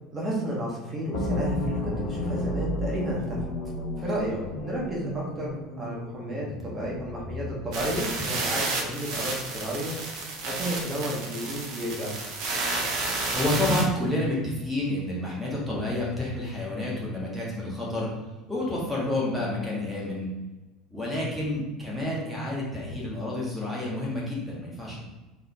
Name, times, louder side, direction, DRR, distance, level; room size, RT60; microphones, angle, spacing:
voice 1, 0.1-3.4 4.0-5.5 5.8-9.9 10.5-12.1 21.0-21.2, equal, 25° right, -4 dB, 1.5 m, -32 dB
sound 1, 1.1-8.0, left 1 dB, 55° left, 1.1 m, -32 dB
sound 2, 7.7-13.8, right 3 dB, 55° right, 0.9 m, -31 dB
voice 2, 13.3-18.1 18.5-20.3 20.9-25.0, left 1 dB, ahead, -5 dB, 1.4 m, -29 dB
4.0 x 3.5 x 3.6 m, 1.1 s
figure-of-eight pair, 70°, 0 cm